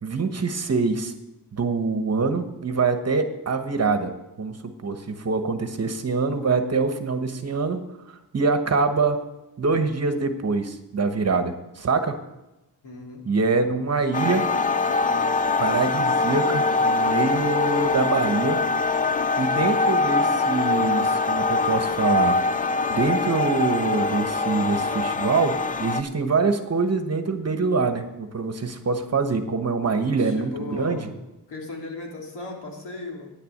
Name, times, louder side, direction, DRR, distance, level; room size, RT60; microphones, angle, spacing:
voice 1, 0.0-1.1 1.5-4.1 4.4-7.8 8.3-9.2 9.6-12.2 13.2-14.4 15.6-18.6 19.4-22.3 22.9-31.1, right 4 dB, 40° right, 8 dB, 1.2 m, -24 dB
voice 2, 12.8-13.2 30.2-31.1 31.5-33.3, left 2 dB, 90° left, -1 dB, 2.9 m, -36 dB
sound 1, 14.1-26.0, left 3 dB, 20° left, 0.5 m, -23 dB
9.8 x 6.8 x 8.6 m, 0.97 s
wide cardioid pair, 115°, 40 cm